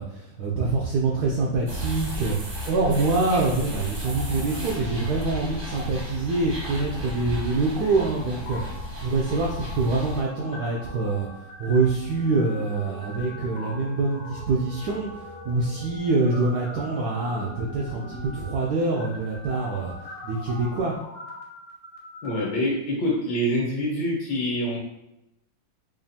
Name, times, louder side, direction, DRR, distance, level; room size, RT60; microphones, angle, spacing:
voice 1, 0.0-11.3 11.6-19.9 20.2-20.9, right 3 dB, 85° right, -2 dB, 0.8 m, -25 dB
sound 1, 1.7-10.2, equal, 50° right, 0.6 m, -34 dB
sound 2, 3.9-5.3 5.6-5.8 6.4-22.4, left 1 dB, 80° left, 0.5 m, -42 dB
voice 2, 22.2-24.8, equal, 65° left, -4 dB, 1.6 m, -25 dB
5.1 x 2.4 x 2.7 m, 0.86 s
omnidirectional pair, 2.3 m